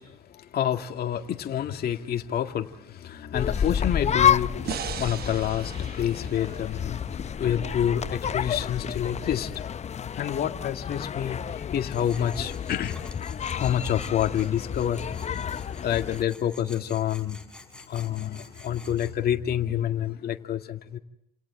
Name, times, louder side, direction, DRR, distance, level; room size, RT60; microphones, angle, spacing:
voice 1, 0.0-9.8 10.1-17.4 17.9-21.0, left 10 dB, 50° left, 5 dB, 2.2 m, -29 dB
sound 1, 3.3-16.2, left 8 dB, 35° left, 0.8 m, -30 dB
sound 2, 4.6-7.9, right 10 dB, 50° right, 1.2 m, -39 dB
Tools, 11.9-19.1, left 2 dB, 5° left, 5.3 m, -49 dB
29.5 x 28.0 x 3.8 m, 0.72 s
hypercardioid pair, 70°, 20 cm